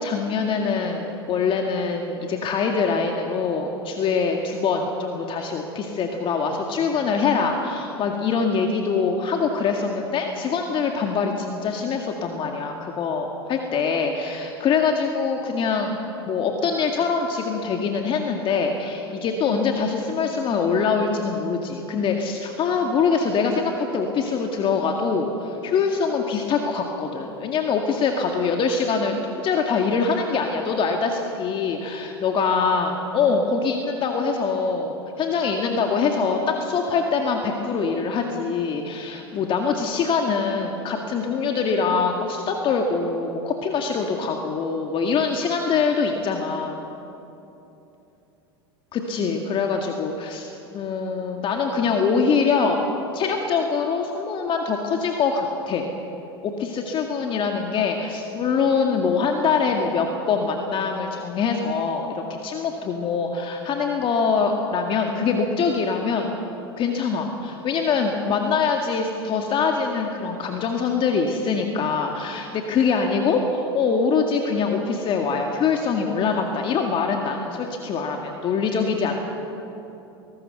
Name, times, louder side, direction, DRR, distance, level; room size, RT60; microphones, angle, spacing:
voice 1, 0.0-29.1 29.4-46.8 48.9-52.8 53.1-55.8 56.4-66.3 66.8-79.2, left 5 dB, 40° left, 3 dB, 2.0 m, -24 dB
22.5 x 19.5 x 6.8 m, 3.0 s
hypercardioid pair, 90°, 14 cm